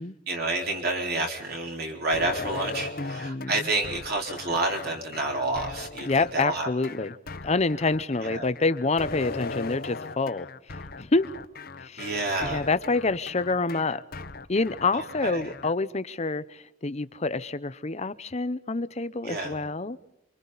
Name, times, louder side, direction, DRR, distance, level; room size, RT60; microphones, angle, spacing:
voice 1, 0.3-6.7 8.2-8.5 12.0-12.6 14.9-15.5 19.2-19.5, right 2 dB, 50° right, 3.9 m, -29 dB
sound 1, 2.1-15.7, left 3 dB, 50° left, 1.1 m, -39 dB
voice 2, 3.0-3.7 6.1-7.1 7.4-11.3 11.8-12.1 12.4-14.0 14.5-20.0, left 3 dB, 35° left, 0.8 m, -27 dB
29.0 x 25.0 x 4.1 m
head